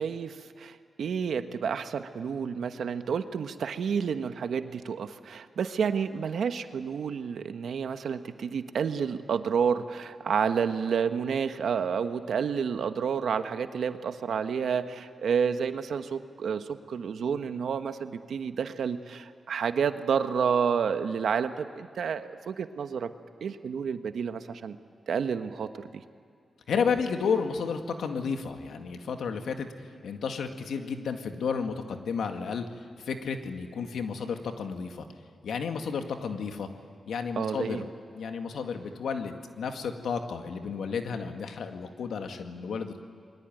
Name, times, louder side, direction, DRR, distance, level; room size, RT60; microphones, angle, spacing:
voice 1, 0.0-23.1 23.4-24.8 25.1-26.0 37.4-37.8, right 6 dB, 80° right, 9 dB, 1.3 m, -30 dB
voice 2, 26.7-29.7 30.0-32.7 33.0-35.1 35.4-36.7 37.1-37.9 38.1-43.0, left 5 dB, 85° left, 5 dB, 2.1 m, -32 dB
28.5 x 22.0 x 9.2 m, 2.2 s
cardioid pair, 70°, 0 cm